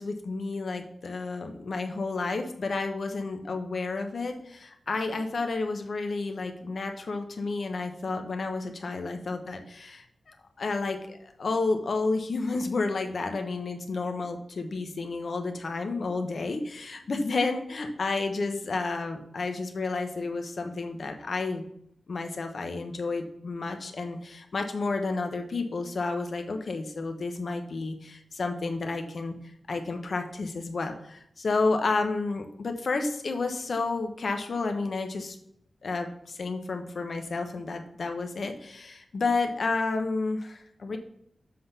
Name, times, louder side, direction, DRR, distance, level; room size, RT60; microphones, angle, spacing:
voice 1, 0.0-21.6 22.1-29.4 29.7-35.4 35.8-41.0, left 3 dB, 65° left, 5 dB, 1.2 m, -31 dB
7.7 x 3.9 x 6.6 m, 0.72 s
wide cardioid pair, 80°, 0 cm